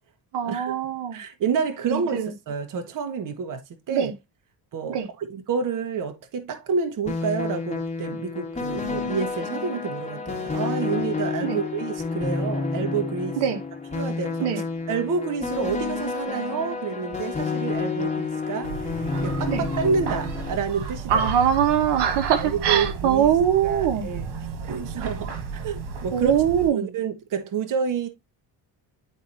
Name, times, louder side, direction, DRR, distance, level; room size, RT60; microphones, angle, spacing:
voice 1, 0.3-1.2 1.8-2.3 3.9-4.1 4.9-5.1 11.4-11.6 13.4-13.6 14.4-14.6 19.5-19.6 21.1-24.1 26.1-26.9, right 9 dB, 70° right, 1.3 m, -22 dB
voice 2, 1.1-3.6 3.9-4.1 4.7-13.4 13.9-14.5 14.9-21.3 22.4-23.3 23.6-24.3 24.6-25.3 25.6-26.3 26.7-28.1, right 5 dB, 50° right, 1.2 m, -29 dB
sound 1, 7.1-20.6, left 4 dB, 15° left, 2.5 m, -29 dB
sound 2, 18.6-26.7, right 5 dB, 85° right, 2.0 m, -33 dB
10.5 x 4.3 x 2.6 m
cardioid pair, 125°, 42 cm